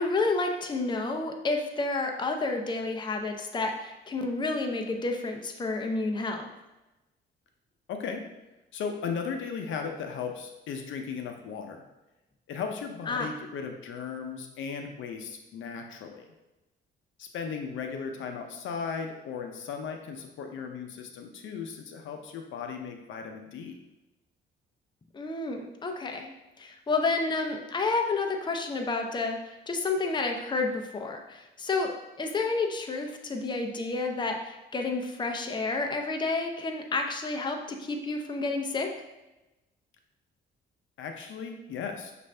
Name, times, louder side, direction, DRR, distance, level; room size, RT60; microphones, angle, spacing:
voice 1, 0.0-6.5 13.1-13.3 25.1-31.9 32.2-38.9, left 3 dB, 25° left, 3 dB, 0.6 m, -30 dB
voice 2, 7.9-8.2 8.7-11.8 12.5-16.3 17.2-23.8 41.0-42.1, left 6 dB, 75° left, 4 dB, 0.6 m, -36 dB
6.2 x 2.6 x 3.3 m, 1.0 s
cardioid pair, 90°, 20 cm